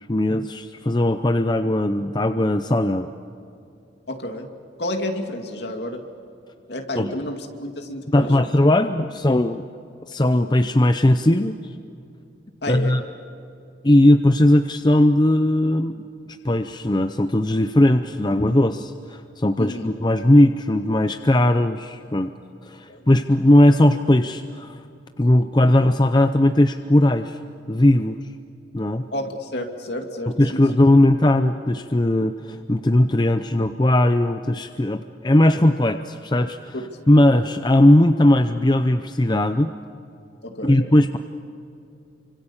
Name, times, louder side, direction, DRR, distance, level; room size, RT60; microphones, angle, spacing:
voice 1, 0.1-3.1 7.0-7.1 8.1-9.6 10.1-11.6 12.7-13.0 13.8-16.0 16.4-22.3 22.6-24.8 25.2-27.4 27.7-28.2 28.7-29.0 30.4-36.7 37.1-39.7 40.6-41.2, left 1 dB, 20° left, 8 dB, 0.6 m, -18 dB
voice 2, 4.1-4.5 4.8-6.0 6.7-8.5 12.6-13.0 19.6-19.9 22.9-23.1 29.1-30.6 36.7-37.3 40.4-40.8, left 1 dB, 60° left, 4 dB, 2.6 m, -30 dB
29.0 x 25.5 x 7.2 m, 2.6 s
head